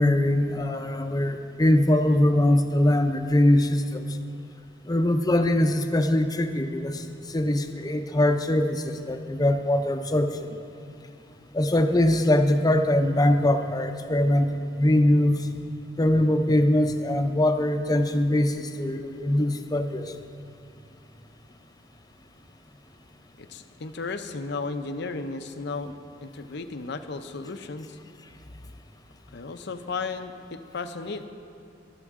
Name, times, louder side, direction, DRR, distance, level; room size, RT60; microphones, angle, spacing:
voice 1, 0.0-4.0 4.9-10.3 11.5-15.4 16.0-20.1, left 1 dB, 20° left, 7 dB, 0.6 m, -22 dB
voice 2, 23.4-25.9 26.2-28.0 29.3-31.3, left 4 dB, 65° left, 9 dB, 0.6 m, -34 dB
24.5 x 8.2 x 3.7 m, 2.5 s
head